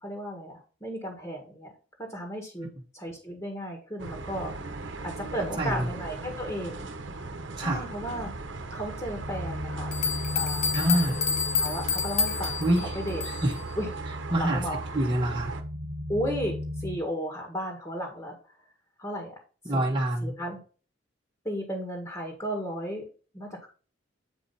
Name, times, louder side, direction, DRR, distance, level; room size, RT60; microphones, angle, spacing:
voice 1, 0.0-1.7 2.1-2.7 2.9-4.5 5.0-6.8 7.6-8.3 8.7-9.9 10.4-11.0 11.6-13.2 13.8-13.9 14.3-14.8 16.1-18.4 19.0-19.3 19.7-19.8 20.2-20.6 21.5-23.0 23.3-23.7, equal, 20° left, 1 dB, 1.8 m, -34 dB
sound 1, 4.0-15.6, right 3 dB, 75° right, 1.1 m, -38 dB
voice 2, 5.6-5.9 7.6-7.9 10.7-11.2 12.6-13.0 13.3-13.6 14.3-14.6 14.9-15.6 19.6-20.4, right 1 dB, 25° right, -2 dB, 1.2 m, -26 dB
sound 2, 9.2-17.0, equal, 50° right, 1.3 m, -36 dB
sound 3, 9.5-9.6 9.9-13.6, left 6 dB, 40° left, 1.0 m, -29 dB
8.4 x 4.9 x 4.2 m, 0.36 s
head